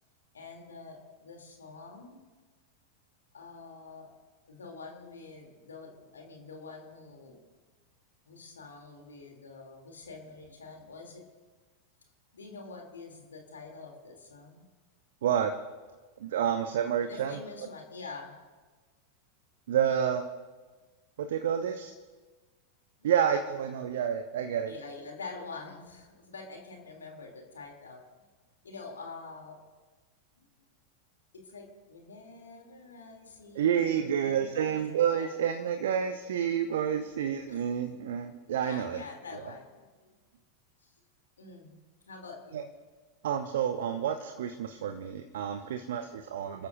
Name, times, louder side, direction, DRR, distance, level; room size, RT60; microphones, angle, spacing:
voice 1, 0.3-2.2 3.3-4.1 4.5-7.4 8.2-11.2 12.3-14.6 17.0-18.3 23.0-23.1 24.7-28.0 28.6-29.6 30.4-30.5 31.4-34.8 35.2-35.3 37.0-37.2 37.5-37.7 38.6-40.2 40.8-40.9 41.4-41.8 42.1-42.7 45.7-46.2, left 4 dB, 70° left, 1 dB, 3.1 m, -46 dB
voice 2, 15.2-15.5 16.2-17.4 19.7-20.2 21.2-21.9 23.0-24.7 33.6-39.0 42.5-42.6 43.2-46.7, right 8 dB, 60° right, 7 dB, 0.9 m, -29 dB
28.5 x 14.0 x 2.7 m, 1.3 s
figure-of-eight pair, 90°, 0 cm